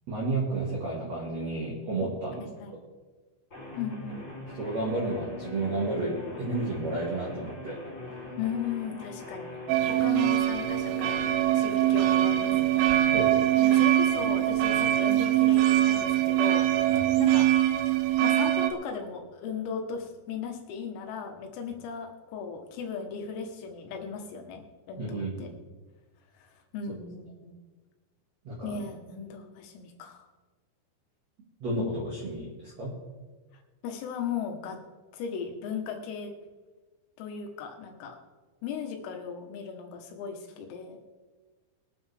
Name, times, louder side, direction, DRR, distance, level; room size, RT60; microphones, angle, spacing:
voice 1, 0.1-2.5 4.6-7.8 13.1-13.4 16.9-17.1 25.0-25.6 28.4-28.8 31.6-32.9, right 2 dB, 45° right, -5 dB, 2.4 m, -31 dB
voice 2, 2.4-2.8 3.7-4.2 8.4-9.5 9.9-12.9 13.6-17.5 18.2-24.6 24.9-25.5 26.4-26.5 26.7-27.6 28.6-30.3 33.8-34.8 35.1-36.3 37.2-38.2 38.6-41.0, left 6 dB, 85° left, 3 dB, 4.1 m, -37 dB
sound 1, 3.5-16.5, left 3 dB, 20° left, 3.5 m, -42 dB
sound 2, 9.7-18.7, right 13 dB, 85° right, 3.4 m, -23 dB
22.0 x 9.6 x 3.5 m, 1.3 s
omnidirectional pair, 5.9 m